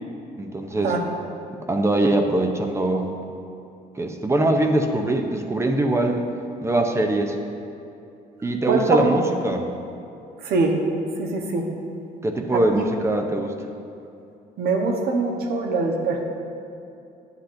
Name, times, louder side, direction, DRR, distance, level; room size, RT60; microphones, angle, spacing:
voice 1, 0.4-1.0 1.5-3.2 3.9-6.2 6.6-7.4 8.4-9.7 12.2-13.5, right 2 dB, 15° right, 3 dB, 0.6 m, -22 dB
voice 2, 8.7-9.1 10.4-10.8 11.2-11.7 12.5-12.8 14.6-16.2, right 3 dB, 65° right, 2 dB, 1.1 m, -23 dB
10.0 x 8.1 x 2.6 m, 2.7 s
cardioid pair, 110°, 17 cm